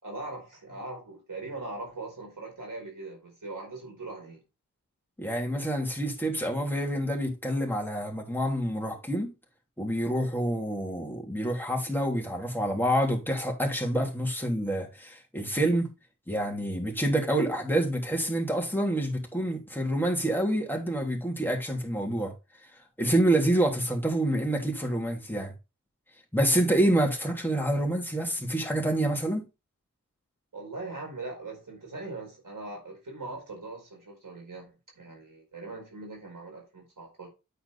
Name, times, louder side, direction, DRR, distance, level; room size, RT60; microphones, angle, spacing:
voice 1, 0.0-4.4 30.5-37.3, right 2 dB, 85° right, 4.8 m, -41 dB
voice 2, 5.2-9.3 9.8-15.9 16.3-22.3 23.0-25.5 26.3-29.4, right 1 dB, 5° left, 3.0 m, -27 dB
9.2 x 4.6 x 4.2 m
wide cardioid pair, 55°, 32 cm